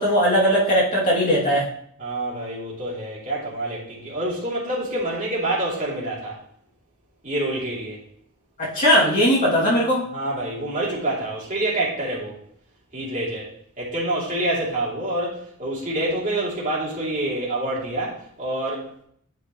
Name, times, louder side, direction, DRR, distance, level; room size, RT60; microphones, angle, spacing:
voice 1, 0.0-1.7 8.6-10.0, equal, 35° left, -7 dB, 2.6 m, -19 dB
voice 2, 2.0-6.3 7.2-8.0 10.1-12.4 12.9-13.5 13.8-18.8, right 1 dB, 35° right, -7 dB, 2.9 m, -27 dB
9.3 x 5.4 x 3.1 m, 0.66 s
head